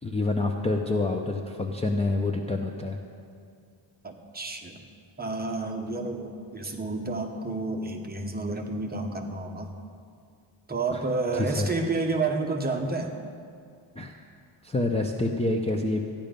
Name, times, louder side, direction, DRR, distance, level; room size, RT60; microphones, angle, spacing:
voice 1, 0.0-3.0 10.9-11.0 11.3-11.7 14.0-14.2 14.6-16.1, left 2 dB, 15° left, 2 dB, 0.5 m, -27 dB
voice 2, 4.0-4.8 5.2-9.7 10.7-13.1, right 3 dB, 20° right, 2 dB, 1.0 m, -30 dB
14.0 x 10.5 x 5.2 m, 2.3 s
wide cardioid pair, 150°, 48 cm